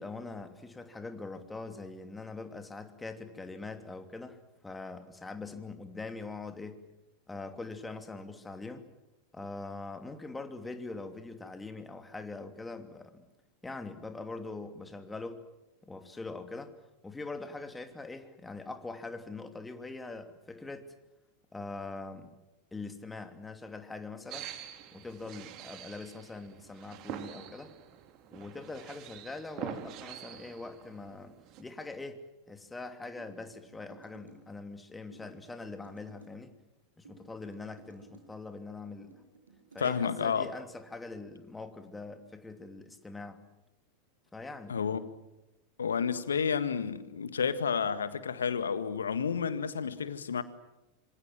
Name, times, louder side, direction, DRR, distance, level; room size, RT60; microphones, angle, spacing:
voice 1, 0.0-6.8 7.3-8.9 9.3-13.2 13.6-15.5 15.8-16.7 17.0-20.9 21.5-22.3 22.7-24.5 24.9-27.7 28.3-32.2 32.5-36.5 37.0-39.1 39.7-43.4 44.3-44.8, left 3 dB, 10° left, 2.9 m, -43 dB
sound 1, 24.3-31.6, right 10 dB, 45° right, 2.9 m, -45 dB
sound 2, 33.2-34.4 35.1-36.3 37.0-38.3 39.0-40.2, right 4 dB, 85° right, 7.0 m, -57 dB
voice 2, 39.8-40.5 44.7-45.1 45.8-50.4, left 6 dB, 75° left, 1.8 m, -31 dB
26.5 x 25.0 x 7.6 m
figure-of-eight pair, 90°, 0 cm